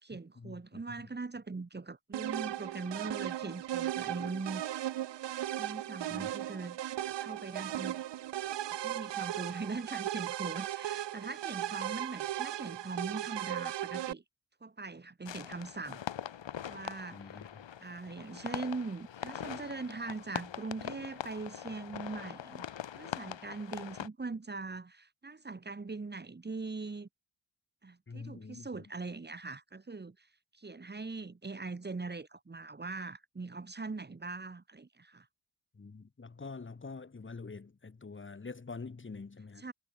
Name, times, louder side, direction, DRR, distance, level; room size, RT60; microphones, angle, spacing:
voice 1, 0.0-4.6 5.6-6.8 7.2-8.0 8.8-14.2 14.6-16.0 16.7-17.4 17.8-22.6 23.0-27.1 27.8-30.3 30.5-35.3 39.6-39.7, right 3 dB, 20° right, 3.5 m, -41 dB
sound 1, 2.1-14.1, right 13 dB, 65° right, 0.8 m, -37 dB
sound 2, 15.3-24.1, left 9 dB, 70° left, 5.3 m, -42 dB
voice 2, 17.1-17.6 28.1-28.9 35.7-39.7, left 4 dB, 25° left, 4.3 m, -46 dB
wide cardioid pair, 165°, 46 cm